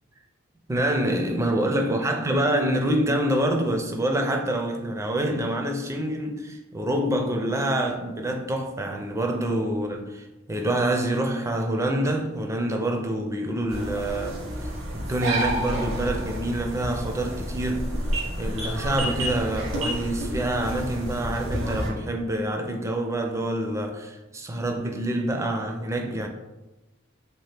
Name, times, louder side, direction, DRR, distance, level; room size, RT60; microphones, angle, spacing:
voice 1, 0.7-17.9 18.4-26.3, right 1 dB, 15° right, 0.4 m, -26 dB
sound 1, 13.7-21.9, right 1 dB, 80° right, 1.0 m, -30 dB
3.5 x 2.8 x 3.3 m
head